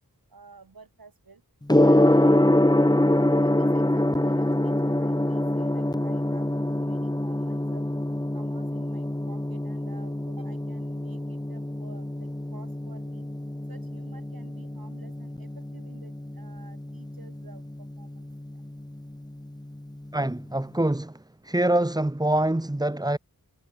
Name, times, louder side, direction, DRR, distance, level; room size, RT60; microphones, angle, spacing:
voice 1, 0.3-1.4 1.8-2.4 3.4-7.8 8.3-13.3 13.7-17.7 18.0-18.6, right 4 dB, 85° right, 7.1 m, -52 dB
Gong, 1.7-20.7, left 1 dB, 10° left, 1.8 m, -25 dB
voice 2, 20.1-21.1 21.4-23.2, right 1 dB, 10° right, 1.1 m, -25 dB
wide cardioid pair, 70°, 34 cm